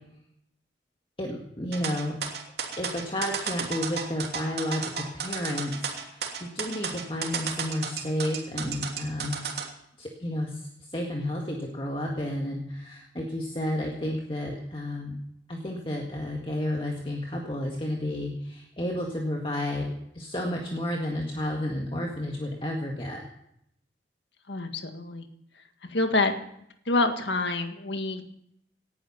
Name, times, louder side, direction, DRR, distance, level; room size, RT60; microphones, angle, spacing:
voice 1, 1.2-2.2 2.8-9.4 10.0-15.2 15.5-19.9 20.1-23.2, left 1 dB, 30° left, 0 dB, 1.8 m, -31 dB
sound 1, 1.7-9.7, right 6 dB, 70° right, 2.9 m, -33 dB
voice 2, 24.5-25.3 25.9-26.4 26.9-28.2, left 2 dB, 85° left, 6 dB, 1.8 m, -27 dB
18.5 x 11.0 x 5.8 m, 0.76 s
head